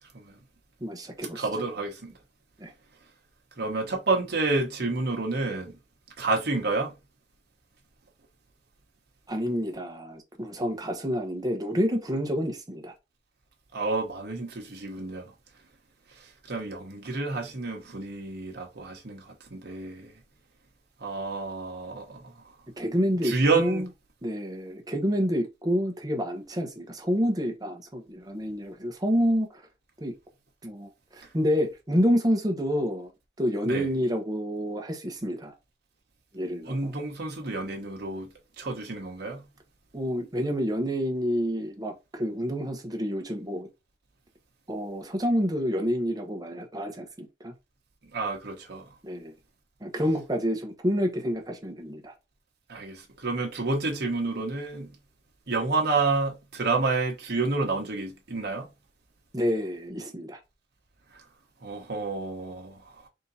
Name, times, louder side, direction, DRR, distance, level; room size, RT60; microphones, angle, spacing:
voice 1, 0.8-1.5 2.6-2.7 9.3-12.9 22.8-23.9 24.2-29.6 30.0-30.1 30.6-33.1 33.4-35.5 36.3-36.9 39.9-43.7 44.7-47.5 49.0-49.3 49.8-52.1 59.3-60.4, equal, 20° right, 1.0 m, -28 dB
voice 2, 1.3-2.1 3.6-5.7 6.2-6.9 13.7-15.3 16.1-20.1 21.0-22.5 23.2-23.8 33.6-33.9 36.6-38.3 38.6-39.4 48.1-48.9 52.7-54.9 55.5-58.7 61.1-61.2 61.6-63.1, right 3 dB, 65° right, 1.1 m, -29 dB
3.7 x 2.8 x 4.0 m
head